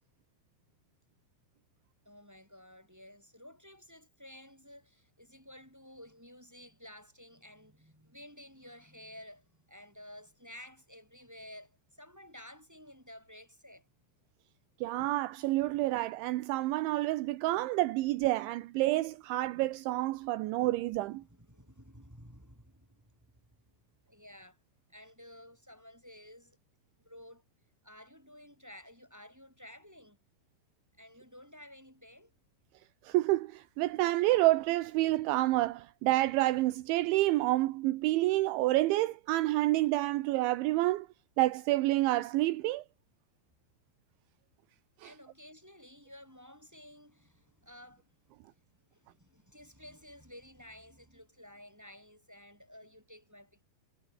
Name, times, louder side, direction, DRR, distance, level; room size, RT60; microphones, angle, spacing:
voice 1, 2.0-13.9 20.4-20.7 21.3-23.3 24.1-24.6 24.9-26.6 27.0-27.4 27.8-30.2 31.0-32.3 45.0-48.1 48.5-53.6, left 1 dB, 5° right, 6.2 m, -53 dB
voice 2, 14.8-21.2 33.1-41.1 41.4-42.8 45.0-45.1, right 17 dB, 80° right, 3.3 m, -28 dB
omnidirectional pair, 5.4 m